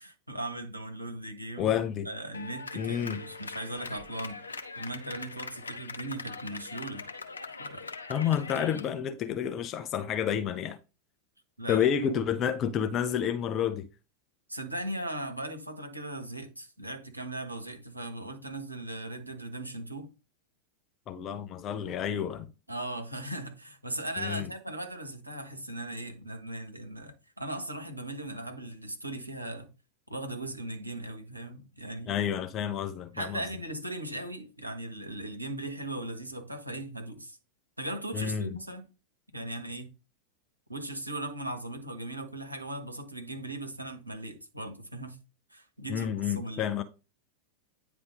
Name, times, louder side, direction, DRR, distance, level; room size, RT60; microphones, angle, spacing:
voice 1, 0.0-1.7 2.0-4.4 4.7-7.1 7.6-7.9 11.6-11.9 14.5-20.1 22.7-29.7 30.1-32.2 33.1-37.4 37.8-38.9 39.3-39.9 40.7-45.2 45.5-46.7, right 1 dB, 85° right, 1.3 m, -38 dB
voice 2, 1.6-2.1 2.8-3.2 8.1-10.8 11.7-13.9 21.1-22.5 24.2-24.4 32.1-33.4 38.1-38.5 45.9-46.8, left 9 dB, 30° left, 0.6 m, -29 dB
Clapping, 2.3-8.9, left 4 dB, 75° left, 0.8 m, -42 dB
9.4 x 3.4 x 5.2 m
figure-of-eight pair, 90°, 0 cm